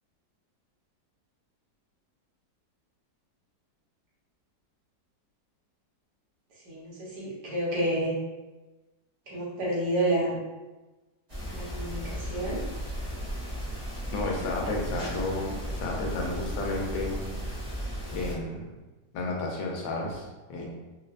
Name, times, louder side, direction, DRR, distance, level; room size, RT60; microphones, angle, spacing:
voice 1, 6.7-8.1 9.3-10.4 11.4-12.6, right 1 dB, 65° right, -7 dB, 1.5 m, -29 dB
sound 1, 11.3-18.3, equal, 40° right, 0.5 m, -35 dB
voice 2, 14.1-17.4 18.1-18.6 19.1-20.7, left 2 dB, 85° left, -1 dB, 1.4 m, -32 dB
3.8 x 2.0 x 2.4 m, 1.2 s
omnidirectional pair, 2.0 m